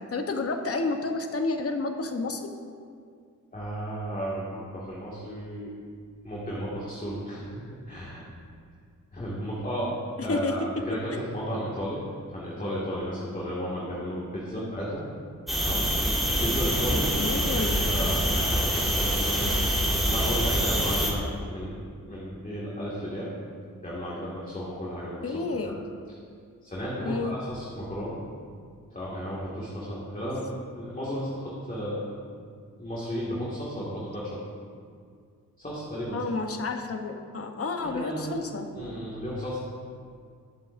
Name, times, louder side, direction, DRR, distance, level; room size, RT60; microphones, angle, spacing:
voice 1, 0.1-2.5 10.3-10.5 11.1-11.3 14.6-14.7 17.2-17.8 25.2-25.8 27.0-27.3 36.1-38.7, left 3 dB, 45° left, 5 dB, 1.0 m, -30 dB
voice 2, 3.5-5.7 6.2-8.2 9.1-12.0 12.3-15.0 15.5-15.9 16.3-17.1 17.4-19.5 20.0-23.3 23.8-25.7 26.6-28.2 28.9-30.5 30.7-32.1 32.8-34.4 35.6-36.3 37.8-38.3 38.7-39.6, equal, 25° left, -7 dB, 2.1 m, -34 dB
sound 1, 15.5-21.1, equal, ahead, 2.2 m, -25 dB
20.0 x 7.4 x 2.6 m, 2.2 s
wide cardioid pair, 100°, 33 cm